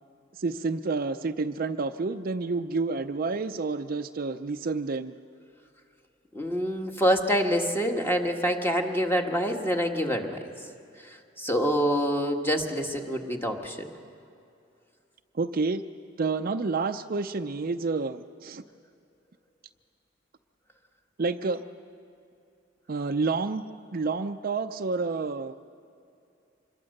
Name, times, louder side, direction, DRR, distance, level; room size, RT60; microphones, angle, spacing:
voice 1, 0.4-5.1 15.3-15.8 16.2-18.6 21.2-21.6 22.9-23.7 23.9-25.5, right 4 dB, 50° right, 8 dB, 0.5 m, -29 dB
voice 2, 6.3-10.5 11.0-13.9, equal, 10° left, 3 dB, 1.5 m, -26 dB
25.5 x 21.5 x 6.6 m, 2.5 s
head